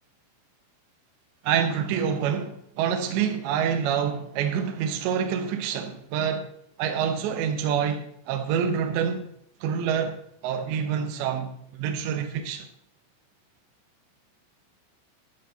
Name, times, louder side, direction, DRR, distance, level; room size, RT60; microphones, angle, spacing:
voice 1, 1.4-6.5 6.8-9.2 9.6-12.7, right 7 dB, 75° right, 2.8 m, -27 dB
13.5 x 10.0 x 4.0 m
omnidirectional pair, 6.0 m